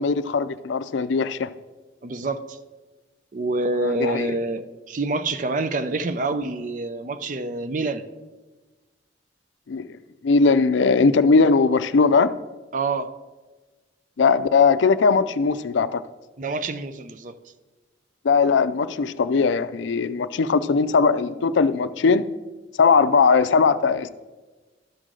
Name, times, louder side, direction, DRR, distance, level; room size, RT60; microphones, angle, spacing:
voice 1, 0.0-1.5 3.8-4.4 9.7-9.8 10.2-12.3 14.2-16.0 18.2-22.2 22.8-24.1, left 4 dB, 80° left, 14 dB, 0.4 m, -19 dB
voice 2, 2.0-2.6 3.3-8.0 12.7-13.1 16.4-17.4, right 2 dB, 45° right, 11 dB, 0.5 m, -27 dB
13.0 x 6.4 x 3.8 m, 1.2 s
head